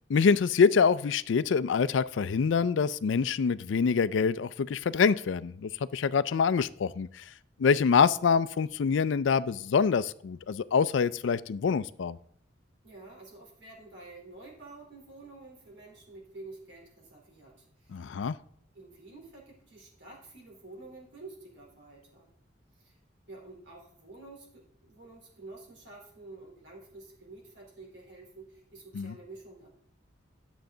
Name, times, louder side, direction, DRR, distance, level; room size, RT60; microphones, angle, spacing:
voice 1, 0.1-7.2 7.6-12.2 17.9-18.4 28.9-29.1, left 5 dB, 75° left, 0.4 m, -25 dB
voice 2, 12.8-18.1 18.7-22.3 22.7-23.0 23.3-29.7, right 2 dB, 65° right, 3.7 m, -49 dB
11.5 x 7.0 x 3.8 m
head